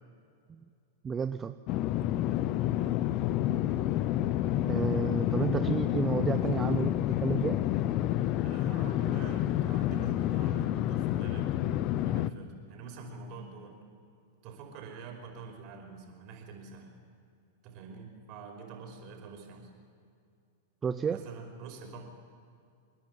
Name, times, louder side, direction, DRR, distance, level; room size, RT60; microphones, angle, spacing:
voice 1, 1.0-1.6 4.7-7.6 20.8-21.2, right 6 dB, 20° right, 10 dB, 0.6 m, -31 dB
sound 1, 1.7-12.3, left 13 dB, 45° left, 0.7 m, -29 dB
voice 2, 8.4-13.8 14.4-16.9 17.6-19.7 21.1-22.0, right 5 dB, 50° right, 3 dB, 5.1 m, -46 dB
28.0 x 10.5 x 9.5 m, 2.4 s
hypercardioid pair, 120°, 0 cm